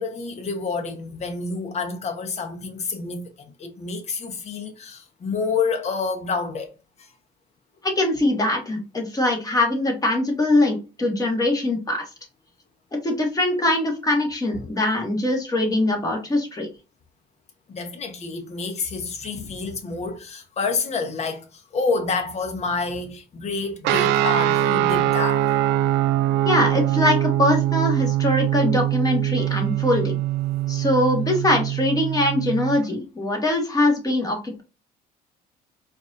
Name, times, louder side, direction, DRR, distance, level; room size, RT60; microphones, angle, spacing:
voice 1, 0.0-6.7 7.0-7.1 14.6-14.7 17.7-25.6, left 4 dB, 40° left, 1.0 m, -28 dB
voice 2, 7.8-12.0 13.0-16.7 26.4-30.2 30.7-34.6, left 1 dB, 20° left, 1.4 m, -22 dB
sound 1, 23.8-32.8, right 13 dB, 85° right, 0.4 m, -22 dB
4.6 x 2.6 x 2.5 m
cardioid pair, 110°, 17 cm